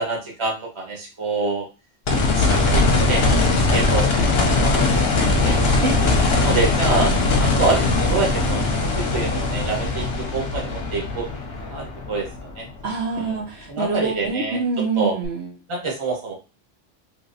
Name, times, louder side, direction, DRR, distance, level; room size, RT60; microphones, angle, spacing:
voice 1, 0.0-1.7 2.3-3.2 3.7-4.8 5.3-5.6 6.3-8.7 9.0-11.3 11.6-12.7 13.2-13.4 13.7-14.6 14.9-15.2 15.7-16.3, right 4 dB, 25° right, -1 dB, 1.0 m, -26 dB
sound 1, 2.1-13.0 15.2-15.3, left 3 dB, 60° left, 1.0 m, -20 dB
voice 2, 5.8-6.2 12.8-15.5, right 4 dB, 60° right, -2 dB, 1.1 m, -25 dB
3.3 x 3.0 x 2.7 m, 0.30 s
omnidirectional pair, 1.3 m